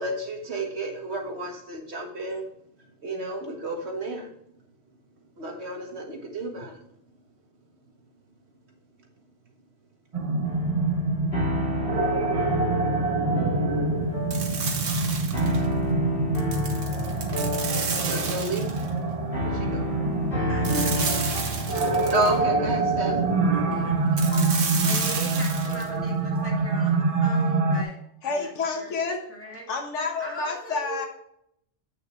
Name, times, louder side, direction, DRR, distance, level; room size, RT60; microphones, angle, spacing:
voice 1, 0.0-2.4 3.0-4.3 5.4-6.8 17.9-19.0 19.4-19.9 20.8-20.9 22.1-23.2, right 2 dB, 60° right, 2 dB, 1.8 m, -31 dB
sound 1, 10.1-27.8, right 3 dB, 35° right, 0.8 m, -26 dB
sound 2, 10.4-26.7, left 1 dB, 50° left, 3.5 m, -32 dB
sound 3, 14.3-15.7 16.3-18.9 20.6-22.4 24.2-25.9, right 5 dB, 90° right, 1.5 m, -31 dB
voice 2, 20.5-21.3 23.5-24.4 24.8-28.9 29.3-29.7 30.2-31.1, right 1 dB, 10° left, -3 dB, 2.6 m, -40 dB
voice 3, 28.2-29.2 29.7-31.1, left 4 dB, 75° left, 1 dB, 1.6 m, -29 dB
8.5 x 6.6 x 3.1 m, 0.73 s
omnidirectional pair, 1.3 m